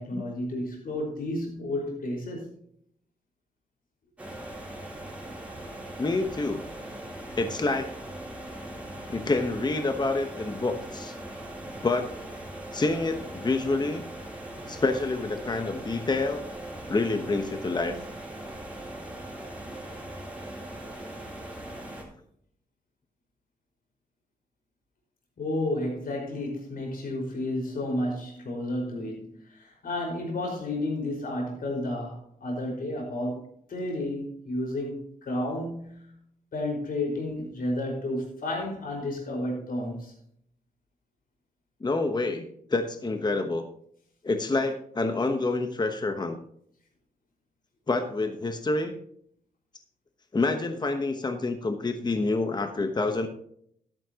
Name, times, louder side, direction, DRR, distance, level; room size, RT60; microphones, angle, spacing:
voice 1, 0.0-2.4 25.4-33.4 33.7-36.1 36.5-40.1, left 1 dB, 70° left, 0 dB, 5.1 m, -31 dB
server room binaural, 4.2-22.0, right 1 dB, 10° right, 3.9 m, -40 dB
voice 2, 6.0-6.7 7.3-7.9 9.1-11.2 11.8-12.1 12.7-14.0 14.7-16.4 16.9-18.0 41.8-43.6 44.2-46.4 47.9-49.0 50.3-53.3, left 3 dB, 30° left, 6 dB, 1.1 m, -27 dB
13.0 x 11.5 x 2.9 m, 0.67 s
wide cardioid pair, 110°, 15 cm